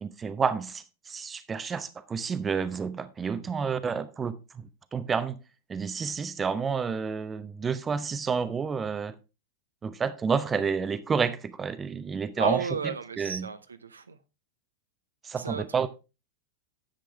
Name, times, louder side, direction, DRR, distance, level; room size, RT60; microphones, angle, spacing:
voice 1, 0.0-4.6 4.9-5.4 5.7-9.1 9.8-12.6 13.2-13.5 15.2-15.9, right 6 dB, 20° right, 0.8 m, -30 dB
voice 2, 12.4-14.2 15.3-15.9, right 5 dB, 75° right, 0.7 m, -33 dB
10.5 x 7.7 x 3.3 m
figure-of-eight pair, 95°, 0 cm